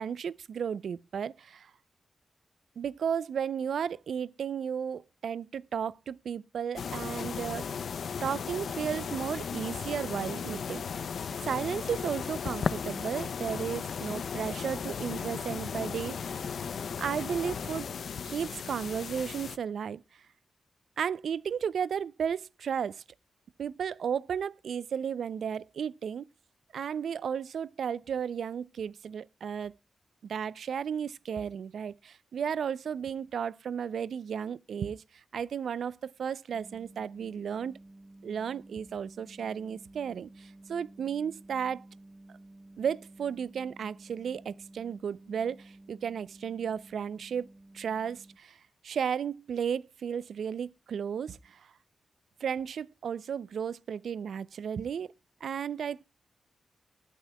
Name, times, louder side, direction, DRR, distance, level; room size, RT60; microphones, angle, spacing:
voice 1, 0.0-1.7 2.8-7.7 8.2-11.1 11.4-16.5 17.0-17.9 18.3-20.0 21.0-23.0 23.6-26.2 26.7-29.7 30.2-35.0 35.3-37.8 38.2-41.8 42.8-47.5 47.7-48.6 48.8-51.7 52.4-55.1 55.4-56.0, right 7 dB, 80° right, 0.5 m, -34 dB
sound 1, 6.8-19.6, left 6 dB, 70° left, 0.6 m, -36 dB
sound 2, 36.5-48.4, right 2 dB, 35° right, 1.1 m, -53 dB
20.0 x 9.3 x 2.2 m
wide cardioid pair, 95°, 0 cm